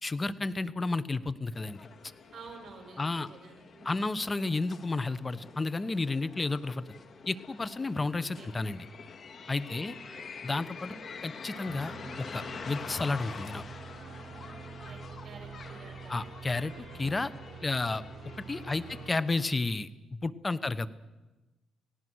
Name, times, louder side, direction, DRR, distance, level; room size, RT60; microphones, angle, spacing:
voice 1, 0.0-1.9 3.0-3.3 3.8-6.8 7.3-8.9 9.5-9.9 10.4-10.9 11.2-13.6 16.1-17.3 17.6-18.0 18.4-20.9, left 3 dB, 25° left, 16 dB, 1.1 m, -32 dB
sound 1, 1.5-19.5, left 5 dB, 50° left, 2.3 m, -46 dB
voice 2, 2.3-4.2 8.4-8.5 9.7-10.3 10.9-11.3 14.8-16.3 18.7-19.0, right 4 dB, 45° right, 2 dB, 6.9 m, -51 dB
sound 2, 11.7-19.1, right 7 dB, 65° right, 1.2 m, -47 dB
30.0 x 17.5 x 6.4 m, 1.1 s
cardioid pair, 90°, 0 cm